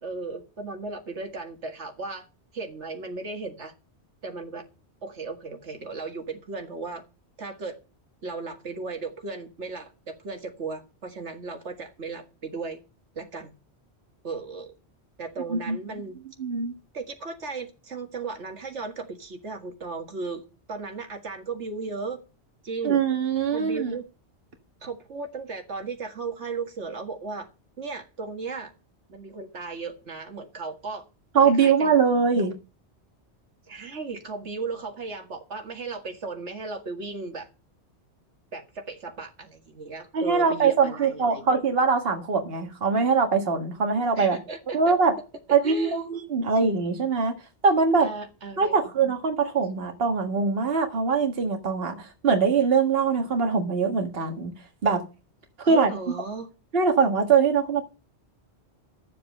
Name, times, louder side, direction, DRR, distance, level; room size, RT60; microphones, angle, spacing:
voice 1, 0.0-2.3 2.5-3.7 4.2-4.6 5.0-7.0 7.4-7.8 8.2-12.8 13.2-13.5 14.2-14.7 15.2-16.2 16.9-22.2 22.6-23.0 23.5-24.0 24.8-27.5 27.8-28.7 29.1-31.1 31.4-32.0 32.3-32.5 33.7-37.5 38.5-41.4 44.1-44.9 45.5-46.1 48.0-49.1 55.6-56.5, right 4 dB, 80° right, 2.1 m, -36 dB
voice 2, 16.4-16.7 22.8-23.9 31.4-32.5 40.1-44.4 44.7-45.1 45.5-47.3 47.6-48.1 48.6-54.5 54.8-55.0 55.7-55.9 56.7-57.8, right 5 dB, 55° right, 1.9 m, -22 dB
12.0 x 7.5 x 6.6 m
omnidirectional pair, 1.2 m